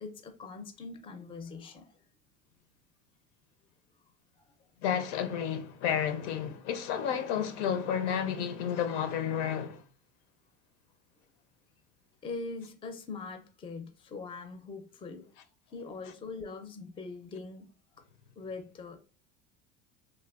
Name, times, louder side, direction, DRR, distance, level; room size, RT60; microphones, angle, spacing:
voice 1, 0.0-1.9 4.4-4.5 12.2-15.3 15.7-17.6 18.4-19.0, left 4 dB, 15° left, 0.4 m, -42 dB
voice 2, 4.8-9.8, left 8 dB, 75° left, 0.6 m, -31 dB
3.1 x 2.2 x 2.3 m
hypercardioid pair, 85°, 35 cm